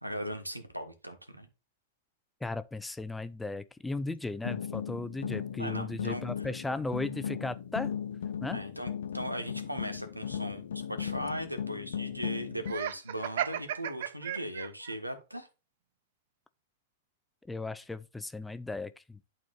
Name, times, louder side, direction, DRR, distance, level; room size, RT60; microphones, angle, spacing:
voice 1, 0.0-1.5 5.6-6.3 8.5-15.5, equal, 85° right, 1.3 m, -38 dB
voice 2, 2.4-7.9 8.4-8.6 17.5-19.2, left 2 dB, 5° left, 0.4 m, -36 dB
sound 1, 4.4-12.7, left 8 dB, 65° left, 0.8 m, -37 dB
Laughter, 12.6-15.0, right 11 dB, 55° right, 0.4 m, -35 dB
11.5 x 4.3 x 2.5 m
figure-of-eight pair, 100°, 0 cm